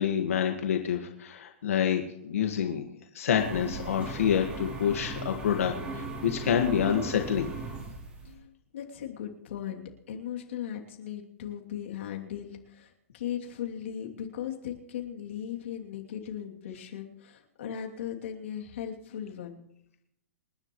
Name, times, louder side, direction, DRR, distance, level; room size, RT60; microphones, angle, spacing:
voice 1, 0.0-2.8 3.1-7.5, left 8 dB, 85° left, 3 dB, 1.8 m, -27 dB
sound 1, 3.3-8.4, right 2 dB, 15° right, 3.4 m, -38 dB
voice 2, 8.2-19.6, left 9 dB, 65° left, 0 dB, 2.9 m, -38 dB
28.0 x 10.5 x 3.2 m, 0.78 s
hypercardioid pair, 170°, 7 cm